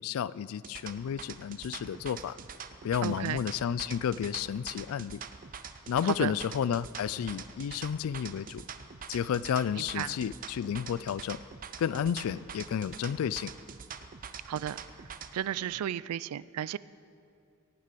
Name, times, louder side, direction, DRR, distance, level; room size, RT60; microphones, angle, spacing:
voice 1, 0.0-2.4 2.8-5.2 5.9-8.6 9.1-11.4 11.8-13.5, left 8 dB, 70° left, 20 dB, 0.3 m, -31 dB
sound 1, 0.5-15.3, right 6 dB, 40° right, 0.6 m, -44 dB
voice 2, 3.0-3.4 6.0-6.3 9.8-10.2 14.5-14.8 15.3-16.8, right 10 dB, 85° right, 19 dB, 0.3 m, -33 dB
17.0 x 6.5 x 6.8 m, 2.4 s
head